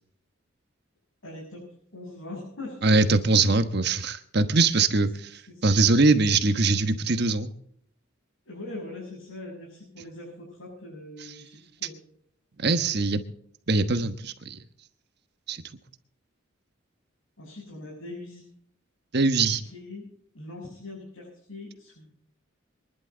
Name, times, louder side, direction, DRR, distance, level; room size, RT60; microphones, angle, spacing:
voice 1, 1.2-1.6 1.9-2.8 5.5-5.7 8.5-12.0 17.4-18.5 19.6-20.1 20.3-22.1, left 2 dB, 90° left, -4 dB, 7.3 m, -41 dB
voice 2, 2.8-7.5 12.6-13.2 13.7-14.6 15.5-15.6 19.1-19.6, right 3 dB, 55° right, 9 dB, 1.2 m, -22 dB
24.0 x 11.5 x 3.9 m, 0.66 s
head